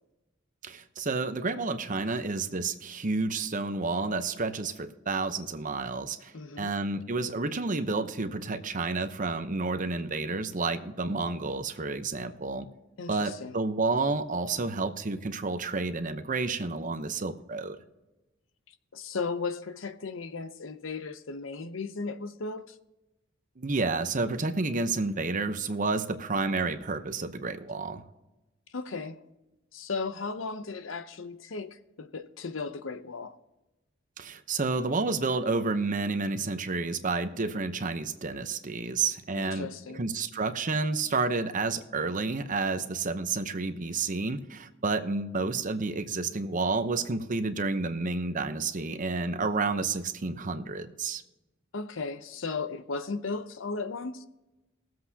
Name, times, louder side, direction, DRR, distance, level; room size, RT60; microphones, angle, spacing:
voice 1, 0.6-12.7 13.1-17.8 23.6-28.0 34.2-51.2, right 3 dB, 40° right, 0.8 m, -30 dB
voice 2, 6.3-6.7 13.0-13.5 18.9-22.8 28.7-29.2 29.7-33.4 39.4-40.1 51.7-54.3, left 4 dB, 75° left, 0.7 m, -36 dB
21.0 x 7.7 x 2.8 m
head